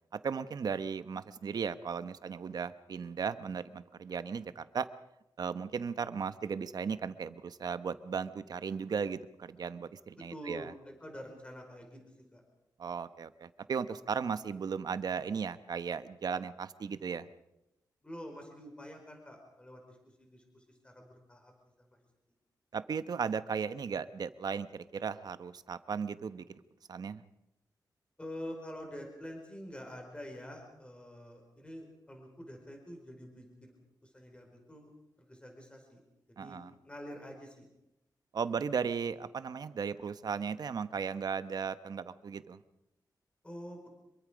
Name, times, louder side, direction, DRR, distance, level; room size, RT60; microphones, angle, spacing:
voice 1, 0.1-4.9 5.4-10.7 12.8-17.3 22.7-26.6 26.9-27.2 36.4-36.7 38.3-42.6, right 6 dB, 60° right, 13 dB, 1.0 m, -36 dB
voice 2, 10.3-12.0 12.3-12.4 18.0-21.5 21.8-22.0 28.2-33.7 34.0-36.0 36.4-36.6 36.8-37.7 43.4-43.9, equal, 15° left, 3 dB, 4.9 m, -47 dB
26.0 x 23.0 x 5.2 m, 0.88 s
wide cardioid pair, 125°, 7 cm